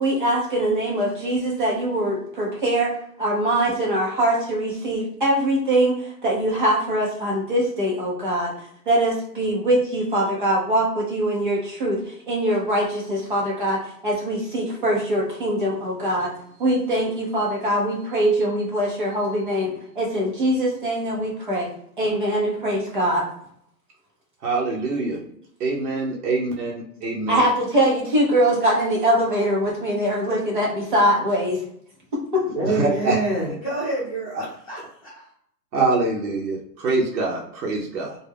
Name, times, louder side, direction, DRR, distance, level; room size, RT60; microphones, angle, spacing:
voice 1, 0.0-2.9 3.2-8.5 8.9-16.3 16.6-21.7 22.0-23.2 27.3-31.6, right 1 dB, 30° right, -3 dB, 0.6 m, -22 dB
voice 2, 24.4-25.2 25.6-26.7 27.0-27.4 32.6-33.2 35.7-38.1, right 3 dB, 65° right, -3 dB, 0.8 m, -24 dB
voice 3, 32.5-35.2, right 2 dB, 20° left, -9 dB, 0.8 m, -27 dB
2.3 x 2.2 x 3.3 m, 0.70 s
hypercardioid pair, 175°, 49 cm